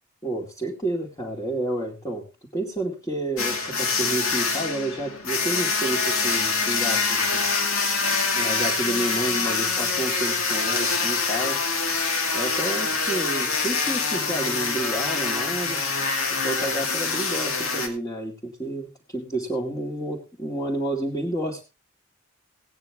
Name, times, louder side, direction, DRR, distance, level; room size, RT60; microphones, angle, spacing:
voice 1, 0.2-2.3 2.5-7.4 8.3-11.7 12.3-15.8 16.4-21.6, right 1 dB, 20° left, -5 dB, 2.3 m, -30 dB
Tesla descending-m, 3.4-17.9, left 4 dB, 85° left, 2.3 m, -25 dB
17.5 x 9.5 x 3.5 m, 0.29 s
head